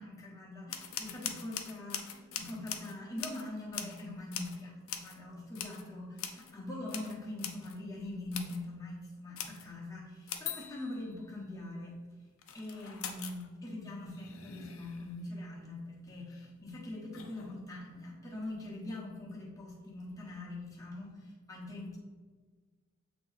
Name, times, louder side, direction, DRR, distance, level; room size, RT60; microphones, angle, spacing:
voice 1, 0.0-12.0 12.5-22.0, left 2 dB, 15° left, -3 dB, 1.2 m, -43 dB
sound 1, 0.7-4.1 4.3-4.6 4.9-5.2 5.5-5.9 6.2-6.5 6.8-7.8 8.3-8.6 9.4-9.7 10.3-11.3 12.4-13.5 13.8-15.2 16.2-16.5 17.1-17.6, left 8 dB, 65° left, 0.6 m, -42 dB
7.8 x 3.0 x 4.1 m, 1.4 s
head